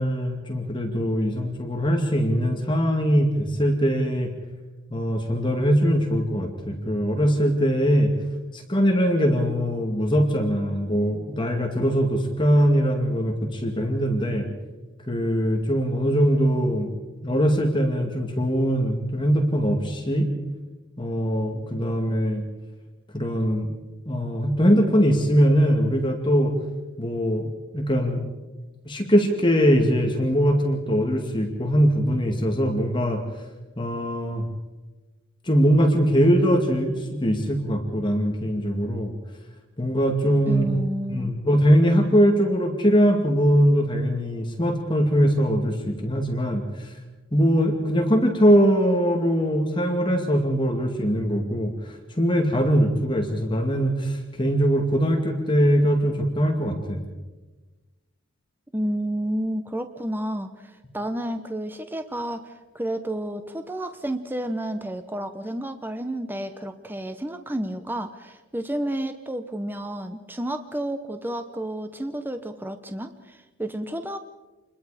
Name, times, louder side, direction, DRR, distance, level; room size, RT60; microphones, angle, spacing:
voice 1, 0.0-4.3 4.9-8.1 8.5-14.4 15.1-16.9 17.2-20.3 21.0-22.4 23.1-23.7 24.1-26.5 27.0-27.5 27.7-28.2 28.9-33.2 33.8-34.4 35.5-39.1 39.8-40.7 41.1-46.9 47.3-51.7 52.2-57.0, equal, 20° left, 2 dB, 2.3 m, -21 dB
voice 2, 40.5-41.3 58.7-74.2, right 1 dB, 10° right, 8 dB, 0.8 m, -31 dB
28.0 x 21.5 x 5.0 m, 1.2 s
head